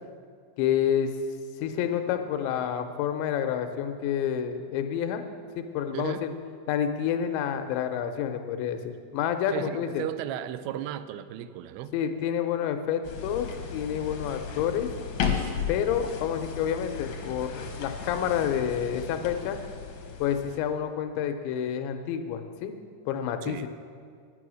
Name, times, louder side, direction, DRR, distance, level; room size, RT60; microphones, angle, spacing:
voice 1, 0.6-1.1 1.6-5.2 5.6-6.3 6.7-10.0 11.9-14.9 15.7-19.6 20.2-22.7 23.1-23.7, left 9 dB, 90° left, 3.1 m, -29 dB
voice 2, 5.9-6.3 9.5-12.0 23.4-23.7, right 11 dB, 90° right, 2.8 m, -35 dB
sound 1, 13.0-20.6, left 6 dB, 75° left, 1.7 m, -35 dB
10.5 x 9.9 x 6.2 m
omnidirectional pair, 5.0 m